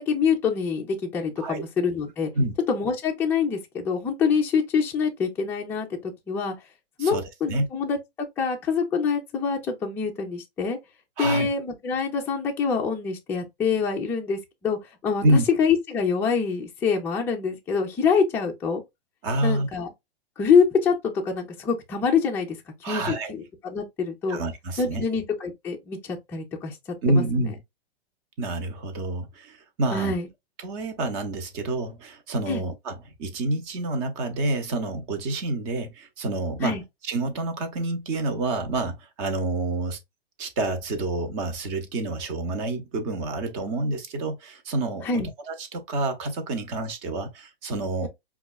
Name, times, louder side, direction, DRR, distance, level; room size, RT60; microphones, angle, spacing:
voice 1, 0.0-2.3 2.7-6.5 7.0-10.8 11.2-15.2 15.6-18.8 19.4-19.9 20.4-22.6 22.8-24.4 24.8-26.8 27.1-27.2 29.9-30.3 32.5-32.6 36.6-36.8 45.0-45.3, left 5 dB, 5° left, 0.4 m, -25 dB
voice 2, 7.0-7.7 11.2-11.5 15.2-15.5 19.2-19.7 22.8-23.3 24.3-25.0 27.0-27.6 28.4-30.1 30.6-40.0 40.4-45.1 45.5-48.1, right 2 dB, 35° right, 0.8 m, -28 dB
4.9 x 2.4 x 2.3 m
hypercardioid pair, 140°, 32 cm